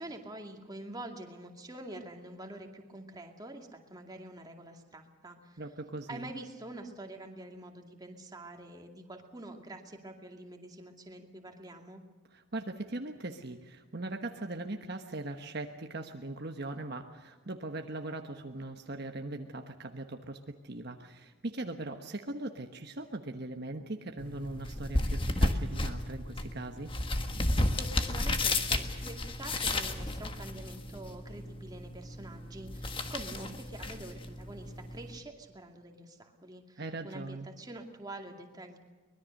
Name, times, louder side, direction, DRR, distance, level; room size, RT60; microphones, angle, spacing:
voice 1, 0.0-5.6 6.1-12.0 27.5-38.8, right 1 dB, 20° right, 3 dB, 2.3 m, -46 dB
voice 2, 5.6-6.3 12.3-26.9 36.8-37.5, right 2 dB, 50° right, 4 dB, 1.2 m, -40 dB
sound 1, 24.2-35.2, left 2 dB, 25° left, 1.5 m, -33 dB
24.0 x 21.0 x 6.6 m, 1.4 s
head